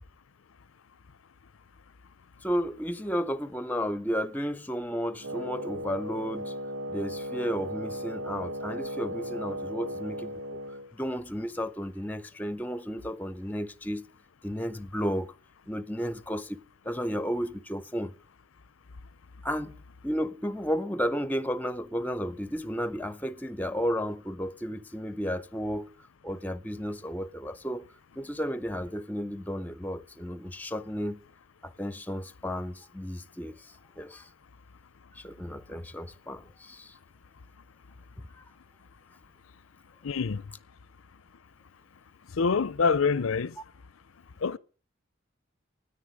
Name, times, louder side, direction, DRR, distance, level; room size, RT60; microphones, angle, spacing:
voice 1, 2.4-6.5 6.9-10.6 10.9-14.1 14.4-15.3 15.7-16.6 16.8-18.1 19.4-19.7 20.0-25.9 26.2-27.8 28.2-31.2 31.6-33.6 34.0-34.3 35.1-36.9, equal, 10° left, 0.6 m, -33 dB
Wind instrument woodwind instrument, 5.2-10.9, equal, 80° right, 1.0 m, -36 dB
voice 2, 40.0-40.4 42.4-43.5 44.4-44.6, left 5 dB, 85° left, 0.6 m, -25 dB
13.5 x 10.0 x 6.5 m
head